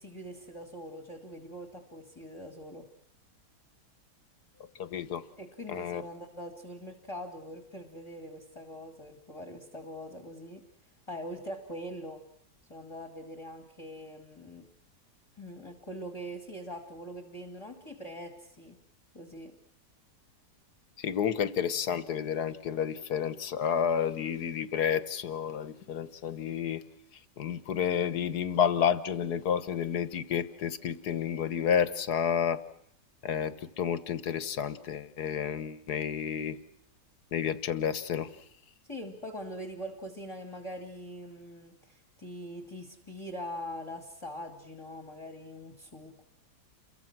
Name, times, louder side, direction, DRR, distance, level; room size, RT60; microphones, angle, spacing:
voice 1, 0.0-2.9 5.4-12.2 12.7-14.7 15.4-18.8 19.1-19.5 38.8-46.2, equal, 15° left, 5 dB, 2.3 m, -43 dB
voice 2, 4.8-5.2 5.7-6.0 21.0-26.8 27.4-32.6 33.2-36.6 37.3-38.3, left 8 dB, 70° left, 13 dB, 1.7 m, -30 dB
29.5 x 23.0 x 6.1 m, 0.71 s
omnidirectional pair, 1.8 m